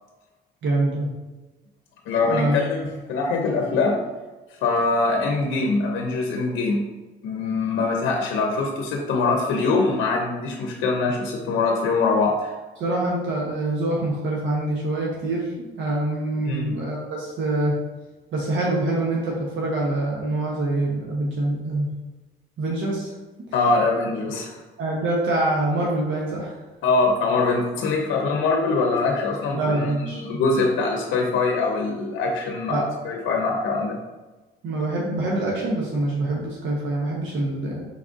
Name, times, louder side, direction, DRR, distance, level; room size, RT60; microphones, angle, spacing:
voice 1, 0.6-1.1 2.2-2.6 12.8-17.7 18.3-21.9 22.6-23.1 24.8-26.6 29.5-30.2 32.7-32.8 34.6-37.8, right 2 dB, 75° right, -3 dB, 1.0 m, -25 dB
voice 2, 2.1-4.0 4.5-6.8 7.2-12.5 16.4-16.7 23.5-24.6 26.8-34.0, left 3 dB, 85° left, 2 dB, 0.6 m, -23 dB
5.2 x 3.6 x 2.6 m, 1.2 s
cardioid pair, 90°, 20 cm